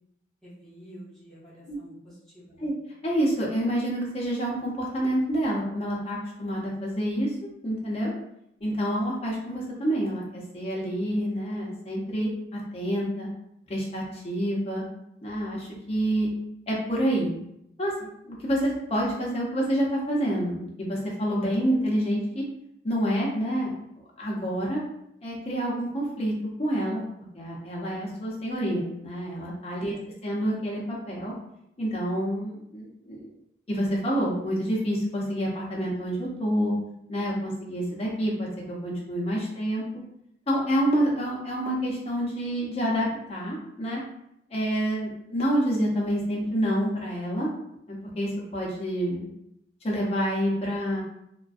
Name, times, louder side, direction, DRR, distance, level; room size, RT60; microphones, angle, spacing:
voice 1, 0.4-2.8 29.8-30.0, equal, 5° left, -9 dB, 0.8 m, -48 dB
voice 2, 3.0-7.3 7.6-8.1 8.6-13.3 13.7-14.8 15.2-16.3 16.7-17.3 17.8-22.4 22.8-23.7 24.2-24.8 25.2-26.3 26.6-27.1 27.3-29.9 30.2-31.3 31.8-33.3 33.7-36.7 37.1-39.8 40.5-44.0 44.5-47.5 47.9-49.3 49.8-51.0, equal, 35° left, -4 dB, 0.6 m, -28 dB
2.4 x 2.1 x 2.4 m, 0.78 s
head